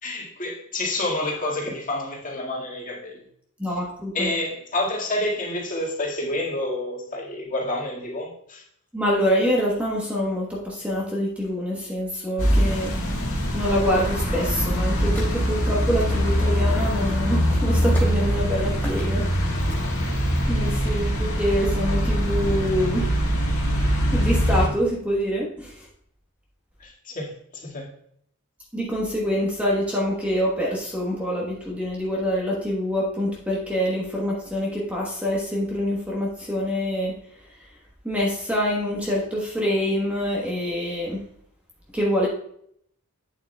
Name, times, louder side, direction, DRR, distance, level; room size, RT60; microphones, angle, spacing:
voice 1, 0.0-3.2 4.1-8.6 26.8-27.9, left 1 dB, 35° left, -3 dB, 1.9 m, -29 dB
voice 2, 3.6-4.3 8.9-13.3 13.5-19.3 20.5-23.1 24.1-25.9 28.7-37.1 38.0-41.2 41.9-42.3, equal, 5° right, -4 dB, 1.1 m, -25 dB
sound 1, 12.4-24.7, equal, 70° left, 1.8 m, -23 dB
sound 2, 13.6-19.7, left 1 dB, 10° left, 2.6 m, -44 dB
8.9 x 7.4 x 2.2 m, 0.68 s
head